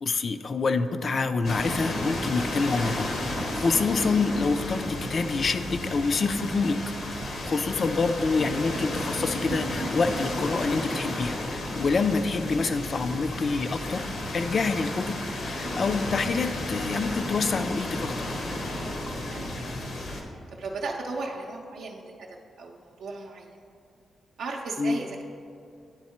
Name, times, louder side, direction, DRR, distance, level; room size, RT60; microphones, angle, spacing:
voice 1, 0.0-3.1 3.5-6.8 7.2-18.3 24.8-25.0, left 4 dB, 45° left, 10 dB, 0.3 m, -27 dB
sound 1, 1.4-20.2, left 1 dB, 70° left, 1.0 m, -33 dB
sound 2, 8.3-11.2, right 2 dB, 50° right, 0.7 m, -38 dB
voice 2, 20.5-22.1 22.6-23.5 24.4-25.2, right 3 dB, 85° right, -1 dB, 0.5 m, -36 dB
10.0 x 3.6 x 4.3 m, 2.5 s
cardioid pair, 115°, 0 cm